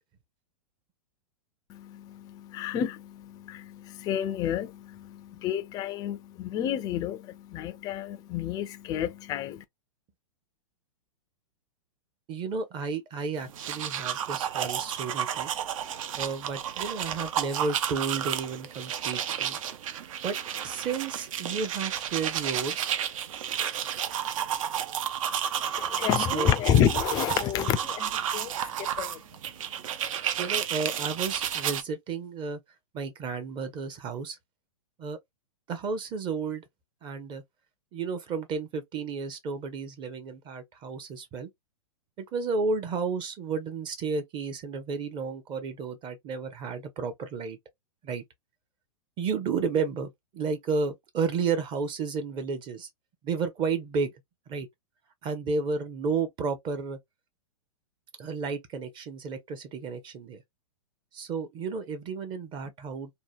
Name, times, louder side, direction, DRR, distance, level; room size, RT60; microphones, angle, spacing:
voice 1, 1.7-9.6 25.8-28.5 28.8-29.2, left 9 dB, 20° left, 0.3 m, -29 dB
voice 2, 12.3-15.5 16.2-19.6 20.2-20.4 20.6-22.9 26.2-26.5 30.4-32.6 32.9-34.4 35.0-35.2 35.7-36.6 37.0-37.4 37.9-41.5 42.2-47.6 48.0-48.2 49.2-52.9 53.2-54.1 54.5-54.7 55.2-57.0 58.2-60.4 61.1-63.1, right 5 dB, 25° right, 0.6 m, -32 dB
sound 1, 13.4-31.8, right 9 dB, 70° right, 0.5 m, -32 dB
2.8 x 2.1 x 2.5 m
hypercardioid pair, 135°, 18 cm